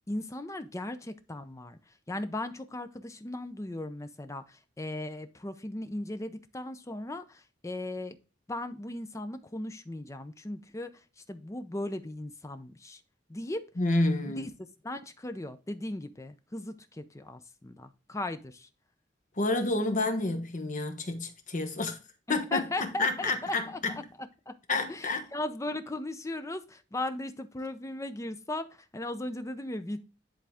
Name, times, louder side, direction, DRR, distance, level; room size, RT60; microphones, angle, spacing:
voice 1, 0.1-8.2 8.5-13.0 13.3-13.6 14.3-14.5 14.8-18.7 22.3-24.6 24.9-30.0, left 1 dB, 15° left, 0.6 m, -37 dB
voice 2, 13.8-14.5 19.4-22.0 22.3-23.9 24.7-25.2, left 2 dB, 40° left, 1.0 m, -29 dB
10.0 x 3.8 x 3.5 m
head